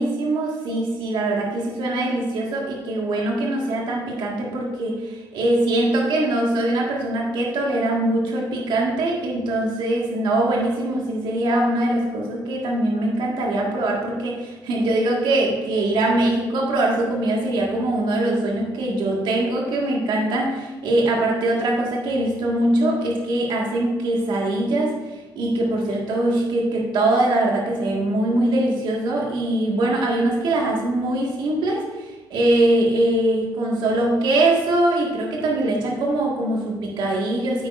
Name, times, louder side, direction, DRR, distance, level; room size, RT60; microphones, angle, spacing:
voice 1, 0.0-25.0 25.4-37.7, right 1 dB, 65° right, -1 dB, 1.9 m, -22 dB
8.9 x 8.6 x 2.6 m, 1.2 s
cardioid pair, 140°, 8 cm